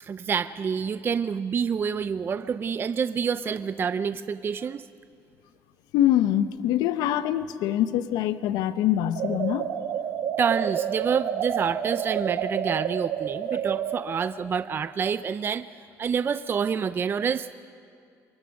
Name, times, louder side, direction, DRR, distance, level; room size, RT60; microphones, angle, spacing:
voice 1, 0.0-4.8 10.4-15.7 16.0-17.6, right 6 dB, 35° right, 13 dB, 0.4 m, -28 dB
voice 2, 5.9-9.7, left 12 dB, 85° left, 13 dB, 0.7 m, -24 dB
sound 1, 9.1-14.0, right 8 dB, 75° right, 1.7 m, -29 dB
23.5 x 21.0 x 6.5 m, 2.4 s
cardioid pair, 115°, 7 cm